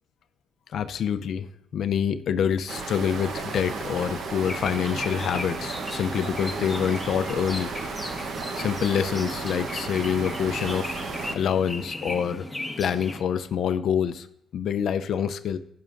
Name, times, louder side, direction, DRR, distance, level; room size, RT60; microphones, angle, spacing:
voice 1, 0.7-1.5 1.7-7.7 8.6-10.9 11.3-12.5 12.8-14.3 14.5-15.6, left 8 dB, 60° left, 10 dB, 0.5 m, -26 dB
sound 1, 2.7-11.4, right 4 dB, 65° right, 1.0 m, -34 dB
sound 2, 4.4-13.2, left 2 dB, 10° left, 1.2 m, -37 dB
11.0 x 10.5 x 2.6 m, 0.76 s
cardioid pair, 100°, 0 cm